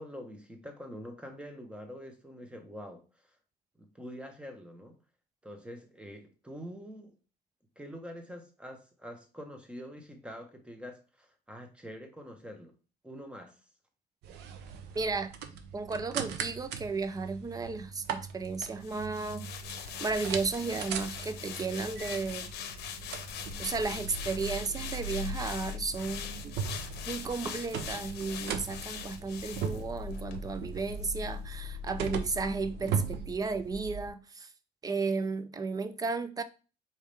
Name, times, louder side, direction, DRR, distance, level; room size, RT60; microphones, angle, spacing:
voice 1, 0.0-3.2 3.8-5.0 5.4-7.1 7.8-12.7 13.0-13.6, equal, 5° right, 1.1 m, -45 dB
sound 1, 14.2-34.1, right 4 dB, 80° right, 0.7 m, -39 dB
voice 2, 14.9-15.3 15.7-19.5 20.0-22.5 23.6-26.5 27.1-34.5 34.8-36.4, right 4 dB, 20° right, 0.5 m, -34 dB
sound 2, 18.8-30.4 30.7-30.9, left 9 dB, 75° left, 0.7 m, -42 dB
4.3 x 3.5 x 3.4 m
cardioid pair, 110°, 17 cm